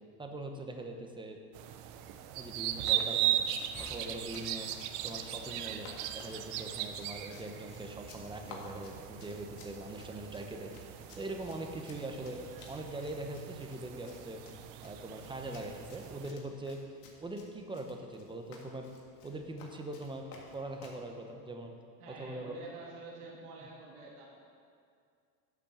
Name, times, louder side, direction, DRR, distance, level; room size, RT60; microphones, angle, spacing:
voice 1, 0.2-1.4 2.3-3.5 3.8-4.7 5.0-10.7 11.2-12.4 12.7-14.4 14.8-16.8 17.2-18.9 19.2-21.7 22.1-22.5, right 2 dB, 10° right, 3 dB, 1.0 m, -42 dB
sound 1, 1.5-16.3, right 11 dB, 60° right, 0.8 m, -38 dB
Run, 2.5-21.0, left 4 dB, 85° left, 2.1 m, -55 dB
sound 2, 3.7-6.1, left 3 dB, 10° left, 0.3 m, -55 dB
voice 2, 22.0-24.3, right 3 dB, 85° right, -3 dB, 2.4 m, -48 dB
10.5 x 6.1 x 7.1 m, 2.3 s
supercardioid pair, 125°, 45 cm